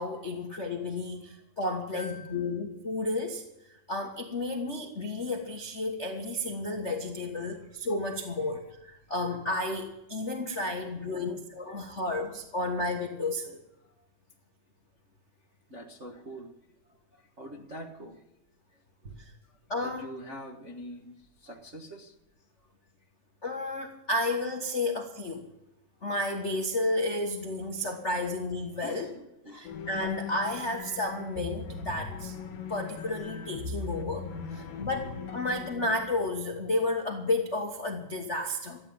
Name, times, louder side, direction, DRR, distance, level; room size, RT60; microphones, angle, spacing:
voice 1, 0.0-3.4 3.9-13.6 19.7-20.0 23.4-25.5 26.0-29.1 29.5-32.3 32.7-38.8, left 2 dB, 50° left, 2 dB, 0.8 m, -32 dB
voice 2, 2.0-2.5 10.8-11.3 11.7-11.9 15.7-16.5 16.9-18.2 19.0-19.2 19.8-22.1 28.8-29.7 34.3-34.8, equal, 50° right, -2 dB, 0.9 m, -45 dB
sound 1, 29.6-36.4, left 5 dB, 80° left, 3.7 m, -39 dB
14.5 x 9.4 x 9.1 m, 0.89 s
omnidirectional pair, 3.9 m